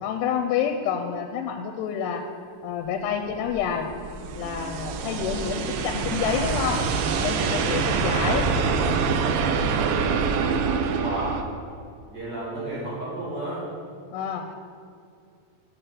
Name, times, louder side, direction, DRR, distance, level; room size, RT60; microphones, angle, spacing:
voice 1, 0.0-2.2 2.6-3.9 4.3-6.8 7.2-8.5 14.1-14.6, left 8 dB, 85° left, 5 dB, 2.6 m, -28 dB
sound 1, 3.2-11.4, right 5 dB, 85° right, 2.0 m, -25 dB
voice 2, 11.0-11.4 12.1-13.7, right 1 dB, 35° right, -7 dB, 2.0 m, -32 dB
7.2 x 5.7 x 6.9 m, 2.3 s
omnidirectional pair, 4.9 m